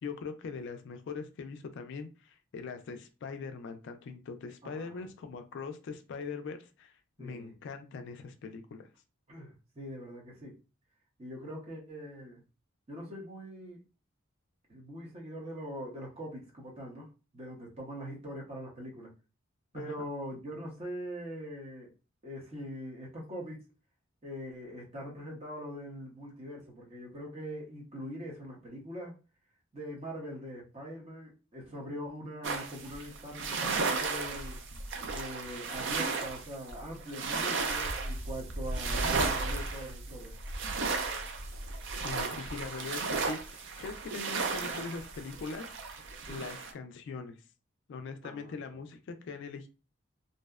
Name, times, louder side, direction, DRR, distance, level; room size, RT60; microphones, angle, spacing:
voice 1, 0.0-6.9 7.2-8.9 19.7-19.9 42.0-45.7 46.3-47.4 47.9-49.7, left 4 dB, 60° left, 0.3 m, -41 dB
voice 2, 4.6-5.3 7.2-7.5 9.3-10.6 11.2-12.4 12.9-13.8 14.7-19.1 19.7-21.9 22.2-23.6 24.2-29.2 29.7-34.6 35.1-40.3 46.3-46.4 48.2-48.8, equal, 30° right, 0.8 m, -42 dB
sound 1, 32.4-46.7, right 4 dB, 60° right, 0.4 m, -34 dB
2.6 x 2.0 x 2.3 m
head